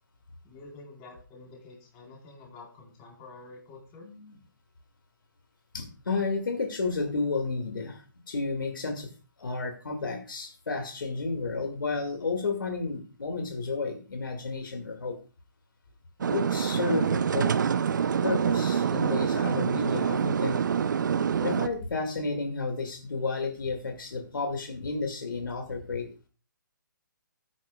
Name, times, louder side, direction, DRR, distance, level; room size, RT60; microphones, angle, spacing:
voice 1, 0.4-4.1, left 3 dB, 25° left, 0 dB, 4.2 m, -48 dB
voice 2, 4.0-4.3 5.7-9.1 9.4-15.2 16.2-17.5 18.2-20.6 21.4-26.3, left 4 dB, 75° left, 4 dB, 2.2 m, -32 dB
sound 1, 16.2-21.7, right 7 dB, 65° right, 0.7 m, -26 dB
14.5 x 9.5 x 2.4 m, 0.35 s
hypercardioid pair, 145°, 11 cm